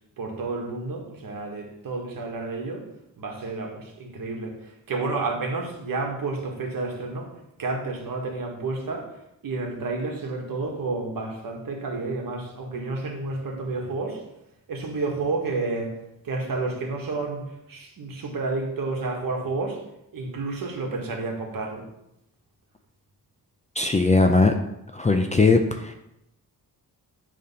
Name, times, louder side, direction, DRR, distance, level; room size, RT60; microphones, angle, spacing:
voice 1, 0.2-2.8 3.2-7.3 7.6-9.1 9.4-14.2 14.7-16.0 16.2-19.8 20.1-21.8, right 3 dB, 65° right, 1 dB, 1.6 m, -30 dB
voice 2, 23.8-24.5 24.9-25.9, left 3 dB, 20° left, 5 dB, 0.4 m, -19 dB
9.1 x 3.5 x 5.5 m, 0.83 s
wide cardioid pair, 175°, 36 cm